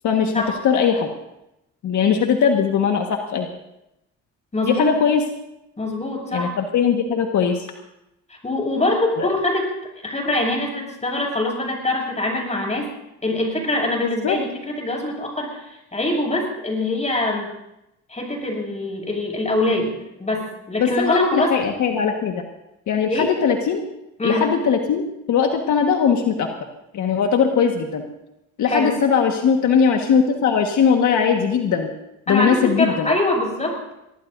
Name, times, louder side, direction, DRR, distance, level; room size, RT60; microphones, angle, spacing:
voice 1, 0.0-0.3 0.6-1.1 1.8-3.5 4.6-5.2 6.3-7.7 9.2-9.3 14.0-14.4 20.8-22.4 22.9-23.8 24.2-26.5 26.9-28.0 28.6-31.9 32.3-33.1, left 7 dB, 75° left, 3 dB, 1.6 m, -20 dB
voice 2, 4.5-4.9 5.8-6.5 8.3-9.7 10.0-12.9 13.2-17.5 18.1-21.6 23.1-23.3 24.2-24.5 28.7-28.9 32.3-33.8, left 1 dB, 25° left, 0 dB, 6.7 m, -23 dB
24.0 x 18.5 x 2.7 m, 0.88 s
cardioid pair, 90°, 30 cm